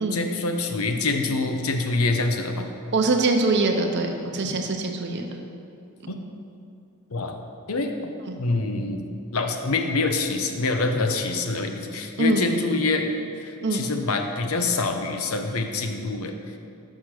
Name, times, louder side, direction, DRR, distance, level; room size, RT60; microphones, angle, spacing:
voice 1, 0.1-2.7 6.1-6.2 7.1-7.4 7.7-8.1 8.4-13.1 13.4-16.3, left 3 dB, 75° left, 5 dB, 0.8 m, -26 dB
voice 2, 2.9-5.2 6.0-6.2 8.3-8.4 12.2-12.4 13.6-13.8, right 2 dB, 50° right, 4 dB, 0.7 m, -23 dB
6.4 x 5.8 x 6.4 m, 2.5 s
head